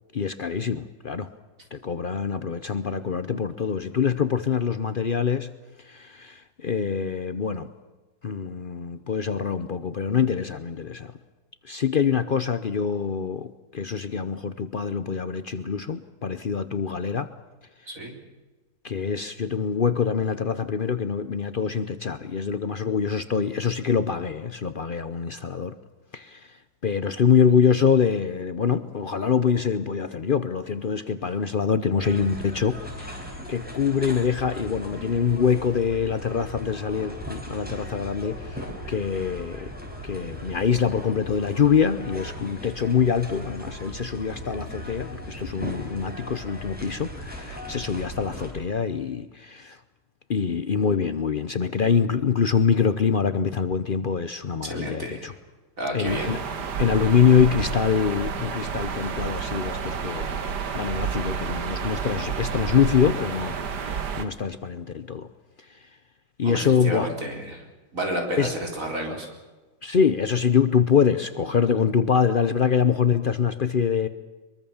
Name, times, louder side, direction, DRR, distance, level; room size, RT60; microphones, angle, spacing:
voice 1, 0.1-1.3 1.7-5.5 5.8-7.7 8.2-11.1 11.6-17.3 18.8-25.7 26.1-26.5 26.8-39.7 40.0-49.8 50.3-55.3 55.9-56.4 56.8-60.4 60.7-65.3 66.4-67.1 68.4-68.5 69.8-74.1, left 7 dB, 75° left, 11 dB, 0.4 m, -24 dB
sound 1, 32.0-48.5, equal, 5° right, 5.3 m, -38 dB
voice 2, 54.6-55.3 55.8-56.3 66.4-67.6 67.9-69.3, right 1 dB, 40° right, 2 dB, 4.6 m, -31 dB
sound 2, 56.0-64.2, right 6 dB, 55° right, 2.0 m, -30 dB
23.0 x 23.0 x 7.2 m, 1.3 s
omnidirectional pair, 2.2 m